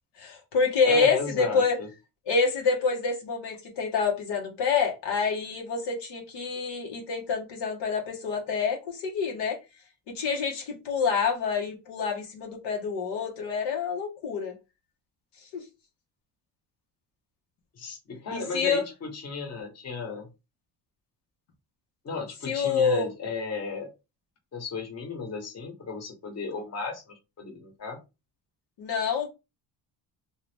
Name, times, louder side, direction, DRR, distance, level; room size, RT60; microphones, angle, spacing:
voice 1, 0.2-1.8 2.3-9.6 10.1-14.5 15.5-15.6 18.3-18.8 22.5-23.1 28.8-29.3, left 5 dB, 90° left, 1.2 m, -27 dB
voice 2, 0.8-1.9 17.7-20.3 22.0-23.9 24.5-28.0, left 5 dB, 40° left, 1.1 m, -34 dB
2.9 x 2.4 x 3.3 m
cardioid pair, 130°, 40 cm